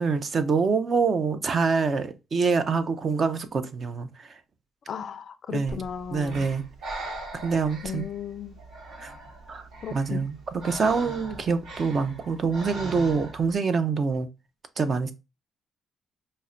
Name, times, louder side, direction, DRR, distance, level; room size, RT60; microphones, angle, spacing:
voice 1, 0.0-4.4 5.5-5.8 6.1-6.6 7.4-8.1 9.0-9.1 9.5-10.4 10.6-14.3 14.8-15.1, right 5 dB, 45° right, 0.5 m, -25 dB
voice 2, 4.9-6.5 7.8-8.6 9.8-10.2, left 7 dB, 55° left, 0.3 m, -35 dB
Breathing, 5.7-13.5, right 2 dB, 75° right, 1.2 m, -40 dB
5.4 x 2.1 x 2.5 m
cardioid pair, 90°, 0 cm